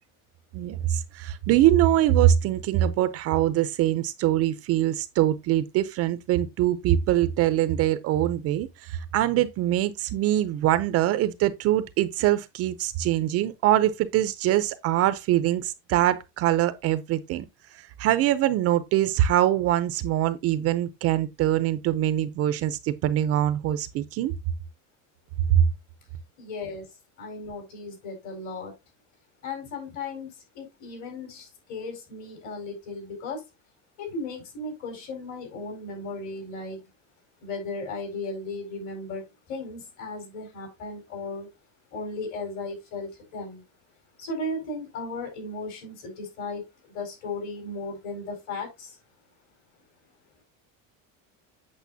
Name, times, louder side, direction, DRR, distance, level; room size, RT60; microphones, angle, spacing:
voice 1, 0.5-17.5 17.7-24.3, right 12 dB, 40° right, 0.5 m, -23 dB
voice 2, 26.4-26.9 27.2-28.7 29.4-30.3 30.5-33.4 34.0-36.8 37.4-41.5 41.9-43.6 44.2-46.6 46.9-49.0, left 3 dB, 50° left, 4.4 m, -36 dB
8.3 x 6.6 x 2.7 m
cardioid pair, 160°, 37 cm